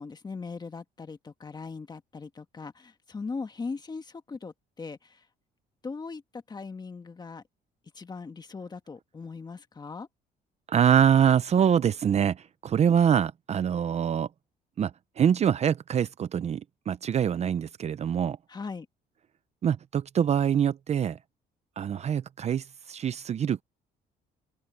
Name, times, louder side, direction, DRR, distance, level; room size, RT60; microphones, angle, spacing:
voice 1, 0.0-5.2 5.8-7.4 8.0-10.1 18.5-18.9, left 4 dB, 25° left, 1.7 m, -39 dB
voice 2, 10.7-14.3 14.8-14.9 15.2-18.4 19.6-21.2 21.8-23.6, right 8 dB, 40° right, 0.7 m, -24 dB
cardioid pair, 110°, 17 cm